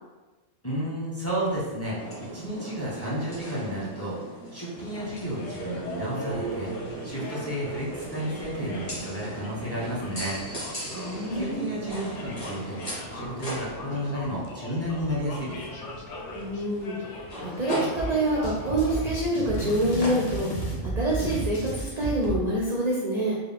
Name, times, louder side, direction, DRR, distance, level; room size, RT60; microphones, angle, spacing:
voice 1, 0.6-2.0 2.3-4.2 4.5-6.7 7.0-10.4 11.3-12.8 13.1-15.6, equal, 15° left, -7 dB, 0.8 m, -32 dB
sound 1, 2.0-20.9, right 2 dB, 30° left, 1.3 m, -38 dB
sound 2, 4.7-20.5, left 3 dB, 70° left, 0.9 m, -42 dB
voice 2, 10.9-11.7 16.4-23.3, right 1 dB, 45° right, -4 dB, 0.5 m, -27 dB
sound 3, 18.0-22.4, right 2 dB, 90° left, 1.3 m, -32 dB
3.8 x 2.4 x 3.4 m, 1.2 s
omnidirectional pair, 1.3 m